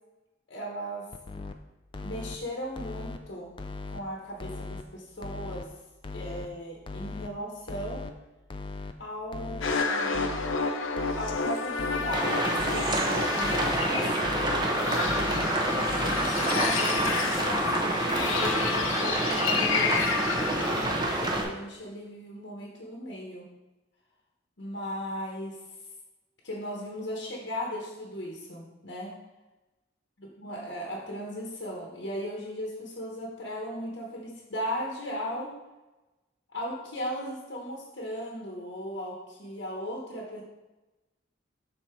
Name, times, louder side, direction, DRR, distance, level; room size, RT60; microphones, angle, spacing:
voice 1, 0.5-1.0 2.0-3.5 3.9-5.7 6.1-8.0 9.0-10.3 11.2-14.5 16.0-23.5 24.6-25.6 26.4-29.1 30.2-35.5 36.5-40.4, equal, 60° left, -2 dB, 1.0 m, -37 dB
sound 1, 1.1-1.5 1.9-2.4 2.8-3.2 3.6-4.0 4.4-4.8 5.2-5.6 6.0-6.5 6.9-7.3 7.7-8.1 8.5-8.9 9.3-9.8 10.1-10.6 11.0-11.4 11.8-12.2 12.6-13.0 13.4-13.9 14.2-14.7 15.1-15.5 15.9-16.3 16.7-16.8 17.1-17.2 17.5-17.6 17.9-18.0 18.3-18.4 18.7-18.8 19.2-19.3 19.6-19.7 20.0-20.1 20.4-20.5, left 3 dB, 25° left, 0.3 m, -38 dB
sound 2, 9.6-21.0, left 4 dB, 85° left, 0.7 m, -30 dB
sound 3, 12.1-21.4, right 2 dB, 20° right, 0.8 m, -28 dB
6.7 x 4.3 x 4.4 m, 1.1 s
head